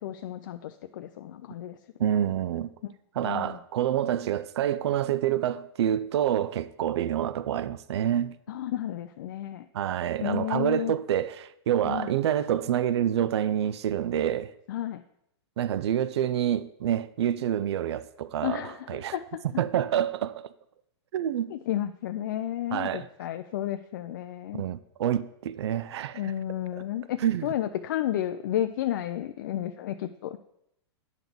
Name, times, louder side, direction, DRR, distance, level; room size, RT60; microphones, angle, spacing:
voice 1, 0.0-1.8 2.8-2.9 3.2-3.6 8.5-9.7 10.2-10.9 11.8-12.1 14.7-15.0 18.4-19.4 21.5-24.6 26.1-30.4, left 12 dB, 45° left, 0.4 m, -32 dB
voice 2, 2.0-2.7 3.2-8.4 9.7-14.5 15.6-19.1 19.6-20.5 21.1-21.5 22.7-23.1 24.6-26.3 26.7-26.8 27.2-27.5, right 10 dB, 70° right, 0.4 m, -27 dB
9.1 x 4.0 x 6.9 m
supercardioid pair, 170°, 15 cm